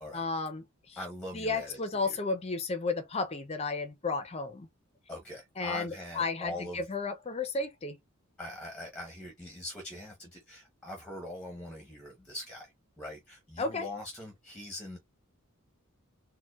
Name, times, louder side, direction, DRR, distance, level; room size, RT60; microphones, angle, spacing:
voice 1, 0.1-1.0 1.3-4.7 5.6-8.0 13.6-13.9, left 3 dB, 30° left, 0.5 m, -33 dB
voice 2, 1.0-2.2 5.1-6.8 8.4-15.0, left 1 dB, 5° left, 0.8 m, -42 dB
4.2 x 2.1 x 2.3 m
head